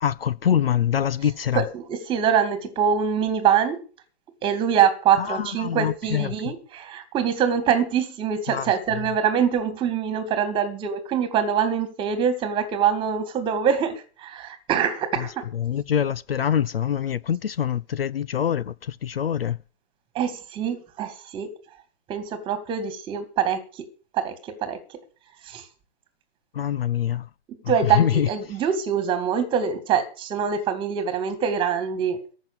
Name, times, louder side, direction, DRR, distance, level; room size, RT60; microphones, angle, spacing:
voice 1, 0.0-1.6 5.2-6.5 8.5-8.7 15.2-15.3 15.5-19.6 26.5-27.3 27.9-28.3, left 9 dB, 60° left, 0.6 m, -24 dB
voice 2, 1.5-3.8 4.4-15.4 20.1-21.5 22.1-23.9 24.1-25.0 25.4-25.7 27.7-32.2, right 8 dB, 15° right, 2.1 m, -24 dB
14.0 x 6.1 x 8.7 m
figure-of-eight pair, 135°, 33 cm